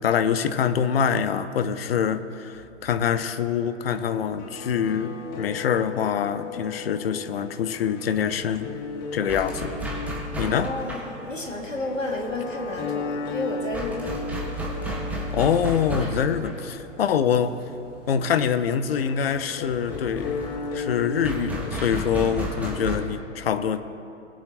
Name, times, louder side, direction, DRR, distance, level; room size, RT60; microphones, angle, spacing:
voice 1, 0.0-8.7 9.1-9.8 10.3-10.7 15.3-16.5 17.0-17.6 18.1-20.4 20.7-23.8, left 8 dB, 50° left, 11 dB, 0.8 m, -25 dB
sound 1, 3.9-21.9, left 4 dB, 25° left, 1.3 m, -36 dB
sound 2, 8.2-23.0, right 1 dB, 5° right, 1.4 m, -34 dB
voice 2, 10.4-14.2 16.0-16.4, left 2 dB, 80° left, 0 dB, 2.3 m, -32 dB
20.5 x 8.6 x 3.0 m, 2.9 s
figure-of-eight pair, 115°, 38 cm